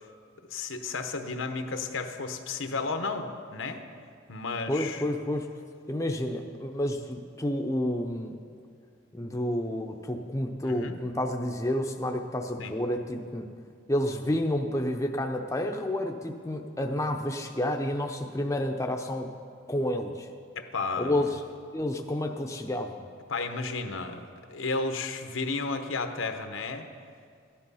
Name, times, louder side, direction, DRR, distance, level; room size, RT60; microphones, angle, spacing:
voice 1, 0.5-3.8 4.3-5.0 10.6-11.0 12.6-12.7 20.6-21.2 23.3-26.9, left 3 dB, 85° left, 6 dB, 1.0 m, -33 dB
voice 2, 4.7-5.5 5.9-8.4 9.1-13.4 13.9-19.3 19.7-20.3 21.0-21.3 21.7-23.0, left 1 dB, 15° left, 3 dB, 0.6 m, -30 dB
14.0 x 10.5 x 5.6 m, 2.2 s
head